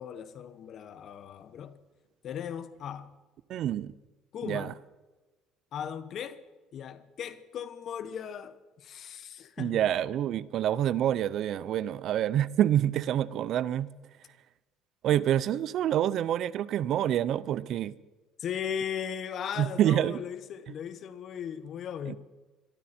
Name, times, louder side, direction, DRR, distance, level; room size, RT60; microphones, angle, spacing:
voice 1, 0.0-1.8 2.2-3.1 4.3-4.7 5.7-6.4 6.7-9.8 18.4-22.2, left 8 dB, 50° left, 1.1 m, -37 dB
voice 2, 3.5-3.9 4.4-4.7 9.6-13.9 15.0-17.9 19.6-20.2 22.1-22.2, right 11 dB, 60° right, 0.5 m, -27 dB
22.0 x 13.0 x 4.3 m
cardioid pair, 110°, 0 cm